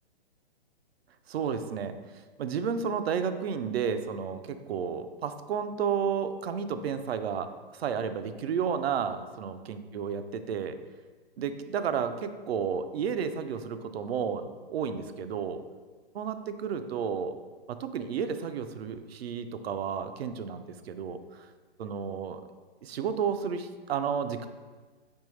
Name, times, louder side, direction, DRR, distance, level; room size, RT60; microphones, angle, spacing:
voice 1, 1.3-2.0 2.4-7.5 7.7-10.8 11.4-15.6 16.1-17.3 17.7-21.2 21.8-22.4 22.8-24.5, right 7 dB, 75° right, 10 dB, 0.5 m, -32 dB
5.3 x 3.0 x 3.2 m, 1.4 s
hypercardioid pair, 140°, 31 cm